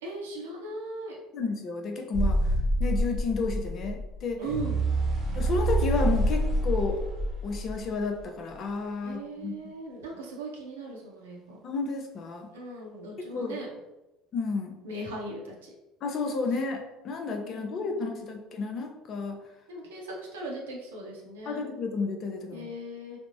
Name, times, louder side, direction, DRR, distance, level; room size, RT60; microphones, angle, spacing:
voice 1, 0.0-1.2 4.4-4.8 9.0-11.6 12.5-13.7 14.8-15.7 17.4-18.5 19.7-21.6 22.5-23.2, right 2 dB, 85° right, -2 dB, 0.7 m, -39 dB
voice 2, 1.3-2.5 2.8-4.4 5.3-7.0 7.4-9.6 11.6-12.5 13.2-13.6 14.3-14.8 16.0-19.4 21.5-22.7, left 4 dB, 50° left, 3 dB, 0.5 m, -31 dB
sound 1, 2.1-8.2, right 1 dB, 45° right, 0.8 m, -27 dB
3.4 x 2.0 x 2.5 m, 1.0 s
hypercardioid pair, 70°, 0 cm